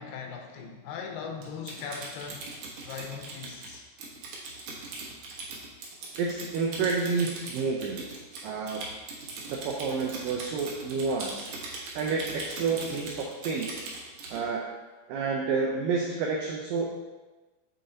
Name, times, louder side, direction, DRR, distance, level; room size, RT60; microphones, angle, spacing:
voice 1, 0.0-2.4 2.8-3.8, left 6 dB, 85° left, 3 dB, 2.7 m, -39 dB
Typing, 1.4-14.4, right 3 dB, 65° right, 2.1 m, -40 dB
voice 2, 6.2-8.0 8.4-8.8 9.5-11.5 11.9-13.7 14.3-14.6 15.1-17.0, right 4 dB, 85° right, -1 dB, 2.0 m, -29 dB
7.5 x 3.9 x 4.0 m, 1.2 s
omnidirectional pair, 4.7 m